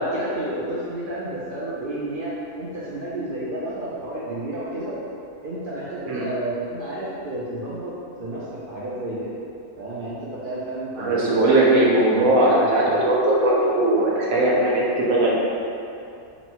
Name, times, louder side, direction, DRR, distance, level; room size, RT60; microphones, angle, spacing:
voice 1, 0.0-5.0 5.4-7.9 8.2-9.3 9.8-11.6 12.1-13.0, right 1 dB, 60° right, -8 dB, 0.5 m, -31 dB
voice 2, 11.0-15.3, right 1 dB, 75° right, -5 dB, 1.2 m, -19 dB
4.1 x 2.0 x 4.4 m, 2.6 s
omnidirectional pair, 1.5 m